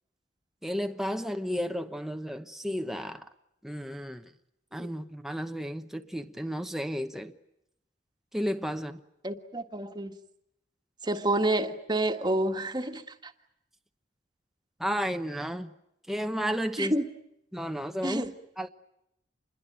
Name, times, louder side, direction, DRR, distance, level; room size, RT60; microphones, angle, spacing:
voice 1, 0.6-3.3 3.6-4.3 4.7-7.3 8.3-9.0 14.8-15.7 16.1-16.9 17.5-18.2 18.6-18.7, equal, ahead, 1.0 m, -32 dB
voice 2, 9.2-10.2 11.0-13.3 16.8-17.0 18.0-18.3, right 1 dB, 25° right, 1.6 m, -29 dB
27.5 x 21.5 x 9.1 m
head